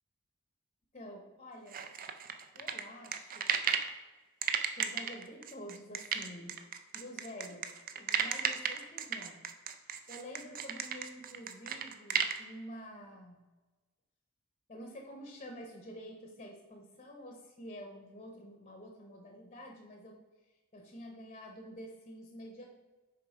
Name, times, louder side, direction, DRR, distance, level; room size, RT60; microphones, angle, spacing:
voice 1, 0.9-1.8 2.5-3.4 4.7-6.6 6.9-9.4 9.8-13.4 14.7-20.2 20.7-22.7, equal, 30° left, 2 dB, 0.8 m, -48 dB
sound 1, 1.7-3.9 4.4-12.4, right 7 dB, 40° right, 0.4 m, -34 dB
6.5 x 3.4 x 4.9 m, 1.2 s
head